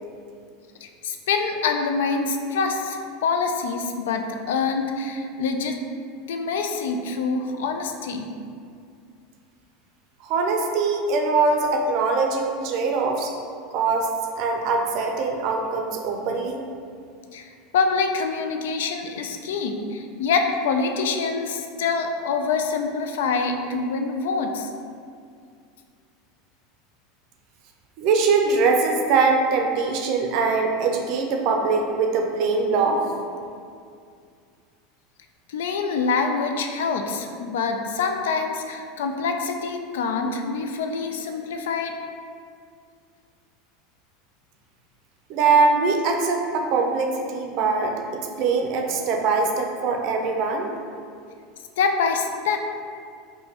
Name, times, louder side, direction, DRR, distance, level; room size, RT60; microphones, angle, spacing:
voice 1, 0.8-5.8 6.3-8.3 17.3-24.7 35.5-42.0 51.8-52.6, left 4 dB, 90° left, 5 dB, 0.3 m, -25 dB
voice 2, 10.2-13.3 13.7-14.1 14.4-16.6 28.0-33.1 45.3-48.0 48.4-50.7, right 4 dB, 55° right, 2 dB, 0.5 m, -22 dB
5.0 x 2.2 x 2.8 m, 2.3 s
supercardioid pair, 140°, 0 cm